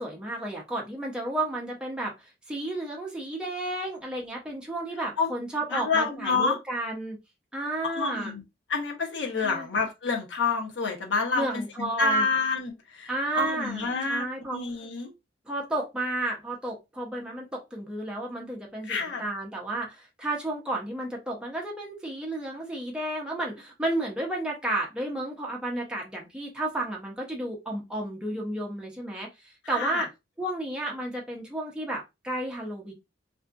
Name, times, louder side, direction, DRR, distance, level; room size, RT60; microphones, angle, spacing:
voice 1, 0.0-7.2 7.5-8.3 9.4-9.7 11.3-12.3 13.1-14.6 15.5-30.1 30.4-32.9, right 1 dB, 5° right, 0.6 m, -32 dB
voice 2, 5.7-6.6 8.0-8.4 8.7-14.3 14.5-15.1 18.9-19.2 29.7-30.1, left 4 dB, 70° left, 0.7 m, -28 dB
2.6 x 2.4 x 2.3 m
head